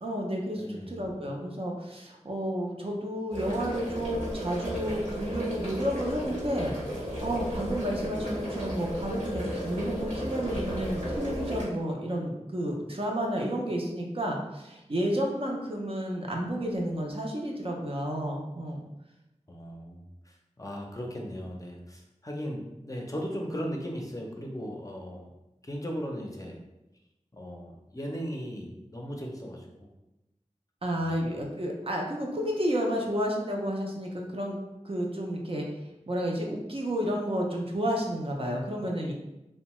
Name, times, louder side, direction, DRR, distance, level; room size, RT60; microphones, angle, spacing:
voice 1, 0.0-18.9 30.8-34.6 34.8-35.7 36.1-39.1, equal, 50° right, -1 dB, 0.5 m, -31 dB
voice 2, 0.6-1.0 19.5-25.3 25.6-26.6 27.3-29.9 31.0-31.2, equal, 30° left, -1 dB, 0.5 m, -37 dB
sound 1, 3.3-11.6, equal, 80° right, 1.2 m, -34 dB
2.7 x 2.1 x 3.0 m, 0.94 s
wide cardioid pair, 45°, 13 cm